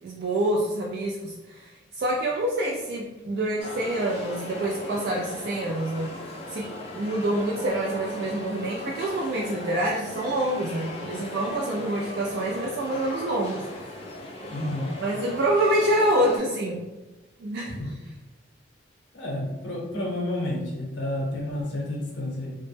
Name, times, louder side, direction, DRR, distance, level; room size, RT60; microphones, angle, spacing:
voice 1, 0.0-6.1 6.5-13.6 14.4-14.6 15.0-16.8 17.4-17.9, right 1 dB, 60° right, -2 dB, 0.3 m, -27 dB
sound 1, 3.6-16.4, left 1 dB, 35° left, 0.4 m, -38 dB
voice 2, 14.5-14.9 17.7-17.9 19.1-22.5, left 1 dB, 70° left, -2 dB, 0.7 m, -30 dB
2.1 x 2.0 x 3.1 m, 1.1 s
head